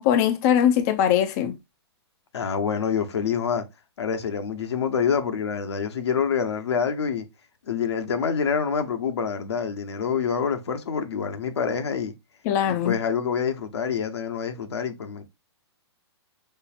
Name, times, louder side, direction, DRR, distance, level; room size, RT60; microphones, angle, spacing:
voice 1, 0.0-1.6 12.5-12.9, left 9 dB, 40° left, 0.5 m, -21 dB
voice 2, 2.3-3.6 4.0-7.3 7.7-12.1 12.6-15.2, left 6 dB, 70° left, 0.9 m, -26 dB
5.4 x 4.0 x 2.4 m
hypercardioid pair, 120°, 14 cm